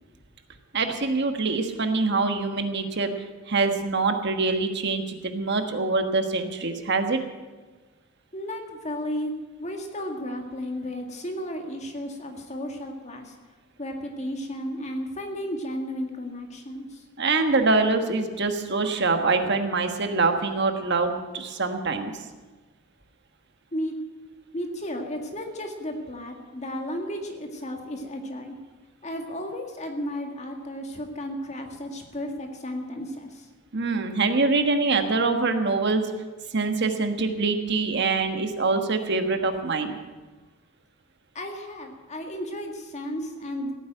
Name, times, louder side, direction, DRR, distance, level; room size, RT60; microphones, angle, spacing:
voice 1, 0.7-3.1 3.5-7.2 17.2-22.1 33.7-36.1 36.5-39.9, right 3 dB, 55° right, 6 dB, 1.4 m, -24 dB
voice 2, 8.3-13.3 13.8-17.0 23.7-23.9 24.5-28.6 29.0-33.5 41.4-43.7, equal, 30° left, 3 dB, 1.9 m, -33 dB
16.0 x 9.1 x 9.0 m, 1.3 s
head